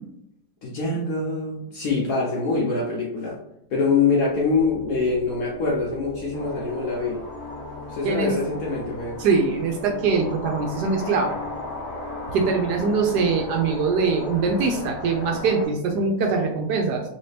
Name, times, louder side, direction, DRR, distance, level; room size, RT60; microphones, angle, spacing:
voice 1, 0.6-3.4 3.7-7.2 7.9-9.2, left 4 dB, 65° left, -2 dB, 0.9 m, -24 dB
sound 1, 3.9-15.4, left 2 dB, 85° left, 1.5 m, -40 dB
sound 2, 6.3-15.7, left 2 dB, 40° left, 0.6 m, -37 dB
voice 2, 8.0-8.3 9.2-11.4 12.3-17.0, right 4 dB, 75° right, 2 dB, 1.0 m, -22 dB
3.2 x 2.8 x 3.2 m, 0.80 s
omnidirectional pair, 2.0 m